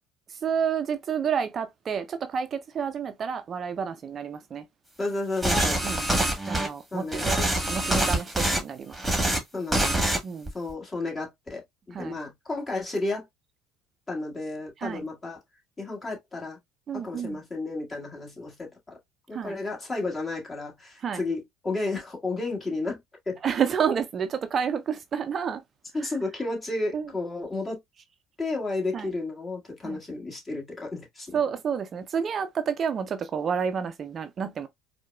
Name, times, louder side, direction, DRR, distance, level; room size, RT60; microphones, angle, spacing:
voice 1, 0.4-4.6 5.5-6.0 6.5-7.4 7.7-9.0 10.2-10.5 11.9-12.2 14.8-15.0 16.9-17.4 19.3-19.6 21.0-21.2 23.4-25.6 26.9-27.0 28.9-29.1 29.8-30.0 31.3-34.7, right 7 dB, 40° right, 0.4 m, -29 dB
voice 2, 5.0-5.8 6.9-7.3 9.5-9.9 10.5-11.6 12.0-13.2 14.1-15.4 15.8-16.6 16.9-19.0 19.3-23.0 23.2-23.4 25.9-27.8 28.4-31.3, left 2 dB, 25° left, 1.6 m, -32 dB
sound 1, 5.4-6.7 7.1-8.6 8.9-9.4 9.7-10.2 10.5-10.7, right 1 dB, 5° right, 1.5 m, -25 dB
4.5 x 2.1 x 2.2 m
hypercardioid pair, 65°, 0 cm